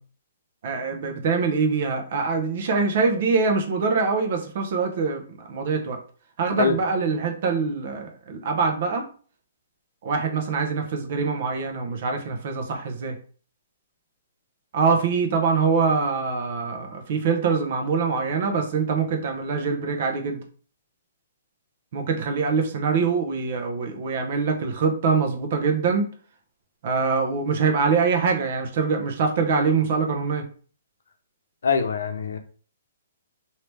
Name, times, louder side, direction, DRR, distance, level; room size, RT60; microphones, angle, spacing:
voice 1, 0.6-6.0 6.4-9.1 10.0-13.2 14.7-20.4 21.9-26.1 26.8-30.4, right 5 dB, 50° right, 0.8 m, -24 dB
voice 2, 31.6-32.4, left 5 dB, 85° left, 0.6 m, -23 dB
3.2 x 2.8 x 3.3 m
hypercardioid pair, 160°, 0 cm